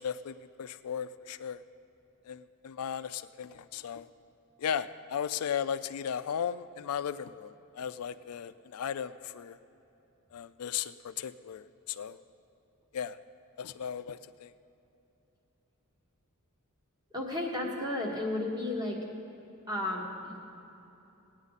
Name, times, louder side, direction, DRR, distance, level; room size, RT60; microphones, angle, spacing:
voice 1, 0.0-1.6 2.2-4.1 4.6-9.6 10.3-12.2 12.9-13.2 13.6-14.5, left 8 dB, 75° left, 13 dB, 0.4 m, -36 dB
voice 2, 17.1-19.0 19.7-20.4, left 1 dB, 20° right, -1 dB, 1.6 m, -33 dB
17.5 x 9.5 x 4.1 m, 3.0 s
head